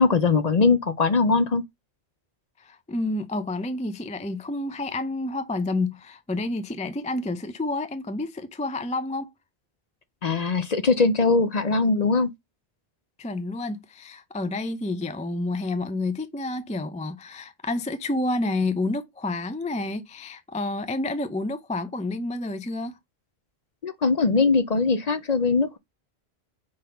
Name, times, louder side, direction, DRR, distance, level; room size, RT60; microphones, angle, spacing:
voice 1, 0.0-1.6 10.2-12.3 23.8-25.8, left 4 dB, 45° left, 0.6 m, -21 dB
voice 2, 2.6-9.3 13.2-23.0, left 2 dB, 10° left, 0.3 m, -29 dB
5.0 x 4.0 x 5.6 m
omnidirectional pair, 1.1 m